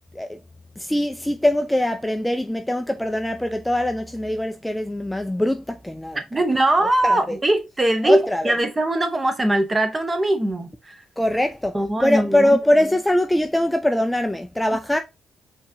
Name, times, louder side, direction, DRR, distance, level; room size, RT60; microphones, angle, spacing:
voice 1, 0.8-6.2 7.0-7.4 8.0-8.5 11.2-15.0, left 1 dB, 5° left, 0.3 m, -22 dB
voice 2, 6.3-11.0 11.7-12.5, right 1 dB, 20° right, 0.8 m, -21 dB
4.6 x 2.7 x 2.6 m
cardioid pair, 90°, 0 cm